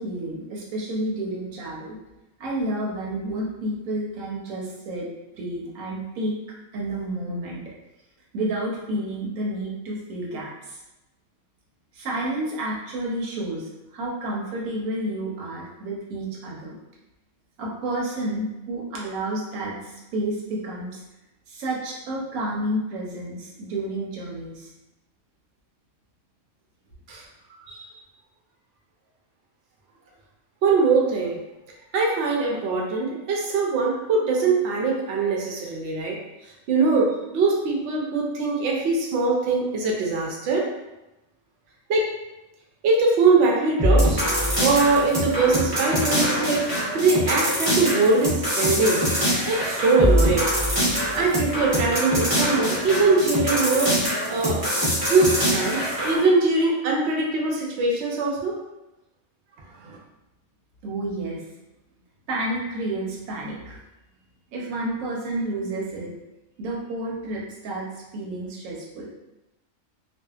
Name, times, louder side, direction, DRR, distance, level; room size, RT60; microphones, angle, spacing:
voice 1, 0.0-2.0 2.4-5.1 5.3-6.4 6.7-7.6 8.3-10.8 11.9-16.8 17.6-21.0 21.5-24.7 60.8-61.4 62.3-63.8 64.5-66.1 66.6-69.1, right 1 dB, 85° right, -3 dB, 1.1 m, -30 dB
voice 2, 30.6-31.4 31.9-36.2 36.7-40.7 41.9-42.1 42.8-44.2 44.6-49.0 49.5-50.5 51.1-54.6 55.1-58.6 59.8-60.0, right 3 dB, 65° right, -2 dB, 0.8 m, -22 dB
sound 1, 43.8-56.2, equal, 25° right, 0.6 m, -23 dB
2.6 x 2.3 x 2.3 m, 0.98 s
omnidirectional pair, 1.4 m